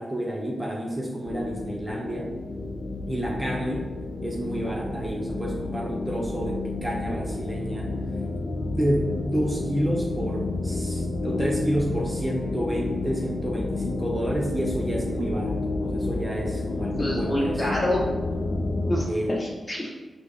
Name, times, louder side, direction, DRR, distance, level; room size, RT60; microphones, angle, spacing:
voice 1, 0.0-2.3 3.1-3.9 4.2-7.9 8.7-17.6 19.1-19.4, equal, 20° right, -2 dB, 0.6 m, -29 dB
sound 1, 1.2-19.0, left 2 dB, 70° left, 0.3 m, -30 dB
voice 2, 17.0-18.0 18.9-19.9, left 1 dB, 35° left, -4 dB, 1.1 m, -27 dB
3.6 x 2.0 x 3.3 m, 1.2 s
supercardioid pair, 45°, 0 cm